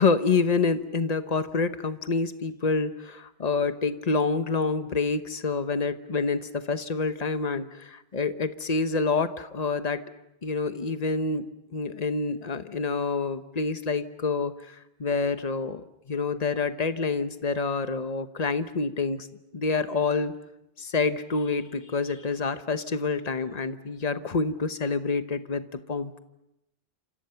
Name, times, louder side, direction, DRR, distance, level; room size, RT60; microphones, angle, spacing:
voice 1, 0.0-10.0 10.4-11.5 11.7-19.3 19.5-20.3 20.8-26.2, left 4 dB, 40° left, 10 dB, 1.2 m, -27 dB
28.5 x 27.0 x 5.8 m, 0.88 s
omnidirectional pair, 1.0 m